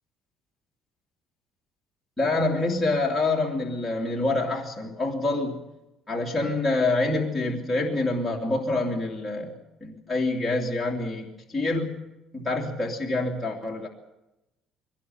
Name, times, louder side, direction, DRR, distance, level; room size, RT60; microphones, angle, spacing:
voice 1, 2.2-5.6 6.1-12.0 12.3-13.9, left 2 dB, 5° left, -4 dB, 2.8 m, -26 dB
22.5 x 18.0 x 7.9 m, 0.94 s
cardioid pair, 175°, 0 cm